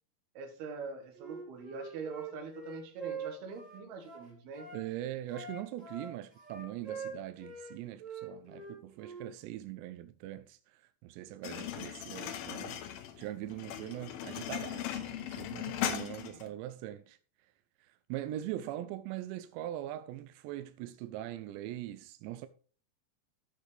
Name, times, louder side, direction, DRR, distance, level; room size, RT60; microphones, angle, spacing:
voice 1, 0.3-4.7, right 5 dB, 70° right, 3.3 m, -43 dB
Wind instrument woodwind instrument, 1.1-4.8 5.3-7.7 8.0-9.3, right 5 dB, 20° right, 2.7 m, -44 dB
voice 2, 4.7-12.8 13.2-17.2 17.8-22.5, right 13 dB, 90° right, 2.8 m, -41 dB
sound 1, 11.4-16.5, left 11 dB, 75° left, 2.5 m, -38 dB
14.5 x 6.2 x 3.3 m
omnidirectional pair, 4.9 m